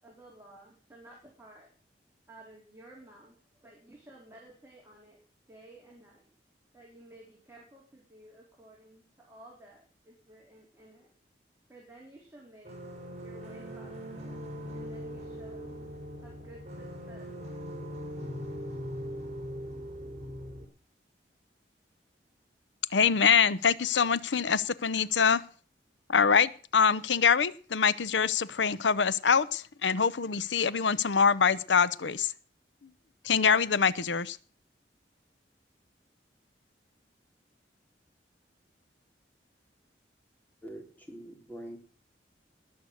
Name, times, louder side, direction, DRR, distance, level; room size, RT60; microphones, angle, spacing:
voice 1, 0.0-1.7 2.3-5.2 5.5-6.3 6.7-11.1 11.7-12.7 13.2-14.4 14.7-15.7 16.2-18.4, right 1 dB, 15° right, -3 dB, 4.0 m, -54 dB
sound 1, 12.6-20.6, equal, 40° right, 4.5 m, -40 dB
voice 2, 22.9-25.4 26.1-32.3 33.2-34.4, left 6 dB, 85° left, 18 dB, 0.7 m, -24 dB
voice 3, 40.6-41.8, right 1 dB, 10° left, 2 dB, 3.5 m, -44 dB
20.0 x 6.7 x 7.9 m, 0.42 s
head